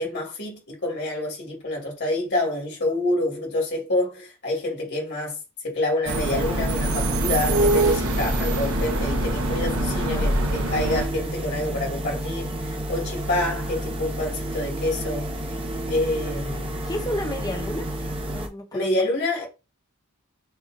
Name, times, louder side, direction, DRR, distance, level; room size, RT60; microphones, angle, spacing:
voice 1, 0.0-5.4 5.6-15.3 15.9-16.8 18.7-19.5, left 1 dB, 50° left, 2.1 m, -27 dB
sound 1, 6.1-18.5, right 1 dB, 25° right, 0.9 m, -31 dB
sound 2, 6.1-11.1, right 1 dB, 85° right, 0.9 m, -24 dB
voice 2, 10.0-10.3 16.9-17.9 18.3-18.9, left 1 dB, 20° left, 0.8 m, -31 dB
6.5 x 2.8 x 2.6 m
head